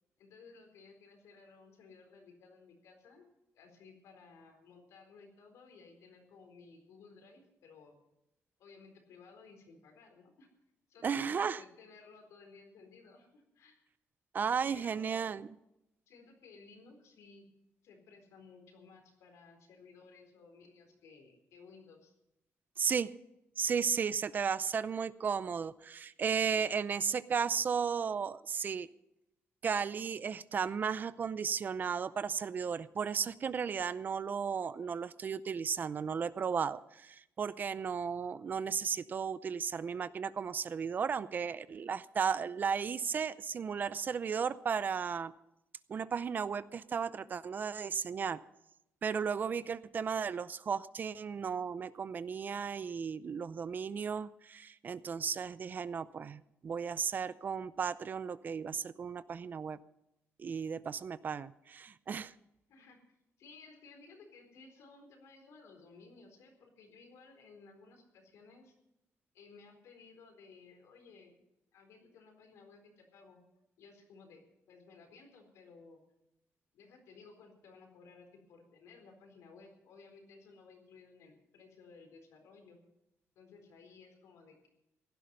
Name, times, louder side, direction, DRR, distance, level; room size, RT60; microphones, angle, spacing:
voice 1, 0.2-3.2 3.5-8.0 8.6-10.5 10.9-13.8 14.6-15.3 16.1-17.4 17.8-22.1 62.7-63.0 63.4-68.7 69.3-71.4 71.7-73.4 73.8-76.0 76.7-82.8 83.4-84.7, left 4 dB, 85° left, 4 dB, 4.2 m, -57 dB
voice 2, 11.0-11.6 14.3-15.5 22.8-23.1 23.6-28.9 29.6-45.3 45.9-48.4 49.0-59.8 60.4-62.3, right 6 dB, 40° right, 16 dB, 0.5 m, -35 dB
16.5 x 11.5 x 5.4 m, 0.86 s
cardioid pair, 140°, 5 cm